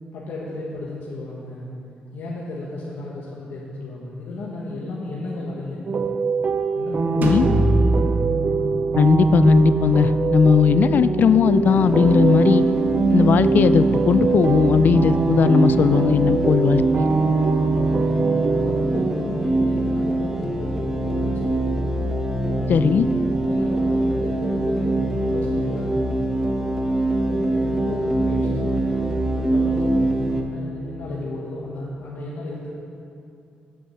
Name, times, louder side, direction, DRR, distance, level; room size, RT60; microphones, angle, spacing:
voice 1, 0.1-1.7 2.1-6.0 6.7-8.1 17.6-18.1 18.5-21.6 22.5-23.1 23.4-26.2 27.2-32.7, left 2 dB, 80° left, -5 dB, 1.2 m, -34 dB
sound 1, 5.9-19.1, right 4 dB, 45° right, 0.4 m, -23 dB
sound 2, 7.2-12.9, right 2 dB, 60° right, 0.9 m, -26 dB
voice 2, 9.0-12.7 13.1-17.0 22.7-23.1, left 6 dB, 60° left, 14 dB, 0.3 m, -18 dB
sound 3, 11.6-30.4, right 2 dB, 15° right, 1.0 m, -23 dB
8.6 x 5.3 x 7.3 m, 2.6 s
cardioid pair, 85°, 3 cm